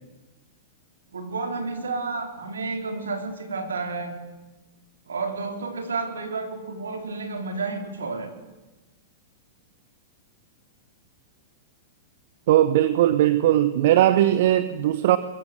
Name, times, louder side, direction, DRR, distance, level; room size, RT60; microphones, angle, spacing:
voice 1, 1.1-4.2 5.1-8.3, right 3 dB, 75° right, 6 dB, 4.2 m, -31 dB
voice 2, 12.5-15.2, right 13 dB, 55° right, 13 dB, 1.1 m, -19 dB
23.0 x 22.5 x 7.7 m, 1.1 s
figure-of-eight pair, 100°, 0 cm